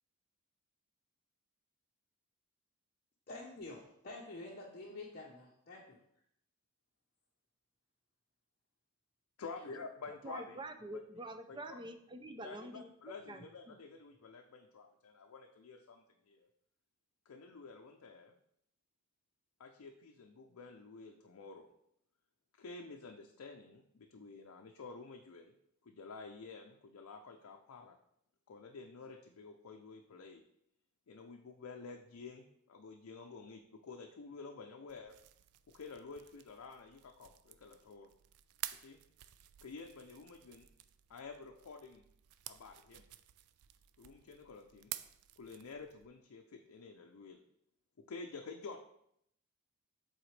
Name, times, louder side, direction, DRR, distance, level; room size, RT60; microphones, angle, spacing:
voice 1, 3.3-6.0, left 2 dB, 45° left, -4 dB, 0.8 m, -48 dB
voice 2, 9.4-10.6 10.9-11.0 11.5-11.8 12.4-16.5 17.3-18.3 19.6-21.7 22.5-25.5 25.8-28.0 28.5-30.4 31.1-35.2 35.7-38.1 38.8-39.0 39.6-40.7 41.1-42.0 42.5-43.0 44.0-44.9 45.4-47.4 48.0-48.8, left 4 dB, 75° left, 3 dB, 0.5 m, -50 dB
voice 3, 10.1-12.9 13.3-13.8, right 1 dB, 20° right, 7 dB, 0.5 m, -46 dB
sound 1, 34.9-46.1, right 13 dB, 80° right, 0.4 m, -52 dB
7.7 x 4.1 x 3.2 m, 0.73 s
head